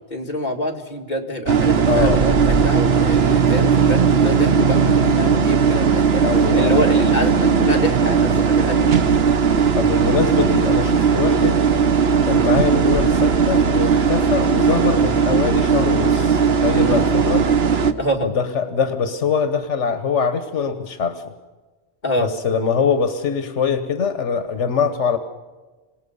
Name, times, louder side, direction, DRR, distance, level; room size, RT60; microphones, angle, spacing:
voice 1, 0.1-6.2 6.6-9.0 16.8-17.1 18.0-18.3 22.0-22.3, left 1 dB, 40° left, 1 dB, 2.4 m, -26 dB
sound 1, 1.5-17.9, right 6 dB, 60° right, 1.2 m, -17 dB
voice 2, 1.9-2.2 6.2-6.8 9.7-11.6 12.1-17.5 18.2-21.2 22.2-25.2, left 6 dB, 80° left, 10 dB, 1.4 m, -23 dB
27.0 x 18.5 x 5.4 m, 1.3 s
omnidirectional pair, 1.2 m